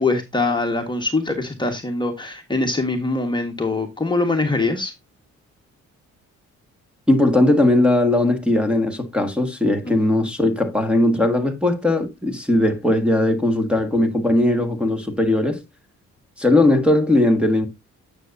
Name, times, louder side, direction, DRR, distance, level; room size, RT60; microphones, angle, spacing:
voice 1, 0.0-4.9 9.9-10.0, left 3 dB, 15° left, 1.6 m, -23 dB
voice 2, 7.1-15.6 16.4-17.7, left 1 dB, 5° right, 1.8 m, -18 dB
9.7 x 6.8 x 2.7 m
cardioid pair, 90°, 30 cm